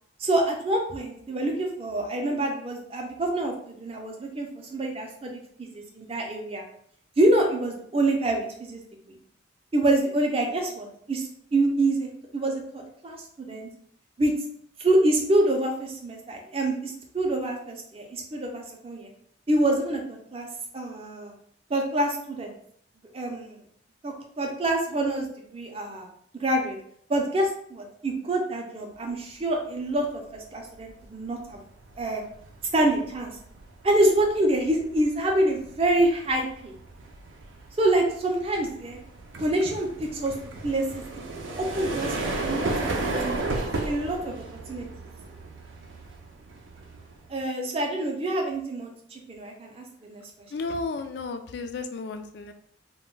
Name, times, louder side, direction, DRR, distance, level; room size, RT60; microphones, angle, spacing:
voice 1, 0.2-6.7 7.2-9.2 9.7-13.7 14.2-14.3 14.8-19.1 19.5-20.5 20.7-21.3 21.7-22.5 23.1-23.6 24.0-26.1 26.3-26.8 27.1-31.6 32.0-32.2 32.7-33.3 33.8-36.7 37.8-39.0 39.4-39.9 40.1-40.3 40.6-41.2 41.6-43.0 43.2-43.4 43.8-44.9 47.3-50.2, right 1 dB, 30° right, 1 dB, 0.5 m, -26 dB
sound 1, 30.0-30.3 30.7-47.4, right 2 dB, 85° right, 0.5 m, -35 dB
voice 2, 50.5-52.5, left 3 dB, 60° left, 7 dB, 0.3 m, -33 dB
2.2 x 2.1 x 3.7 m, 0.66 s
head